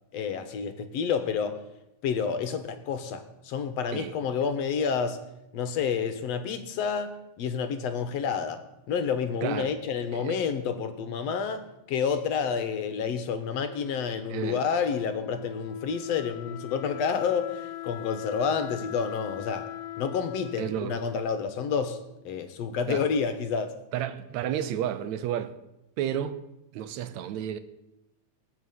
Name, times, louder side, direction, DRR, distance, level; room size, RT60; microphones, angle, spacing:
voice 1, 0.1-1.6 2.0-5.2 5.5-19.7 20.0-22.0 22.2-23.8, left 6 dB, 65° left, 2.2 m, -29 dB
voice 2, 9.4-9.8 10.1-10.4 14.3-14.6 20.6-21.0 22.9-23.1 23.9-25.5 26.0-26.4 26.7-27.6, right 10 dB, 75° right, 2.2 m, -31 dB
Wind instrument woodwind instrument, 13.4-22.2, left 12 dB, 80° left, 0.8 m, -41 dB
18.0 x 6.7 x 9.4 m
omnidirectional pair, 3.4 m